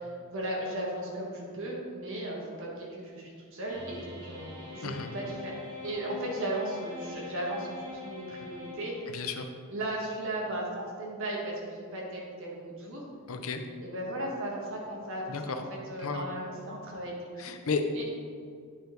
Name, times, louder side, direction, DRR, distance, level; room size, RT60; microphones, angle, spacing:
voice 1, 0.0-5.5 5.8-8.9 9.7-13.0 13.8-17.5 17.9-18.1, right 1 dB, 60° right, -3 dB, 1.4 m, -36 dB
sound 1, 3.7-9.5, left 3 dB, 40° right, 1.6 m, -44 dB
voice 2, 9.1-9.5 13.3-13.6 15.3-15.6 16.0-16.3 17.4-17.8, left 5 dB, 70° left, 6 dB, 0.7 m, -33 dB
9.7 x 5.3 x 3.8 m, 2.1 s
head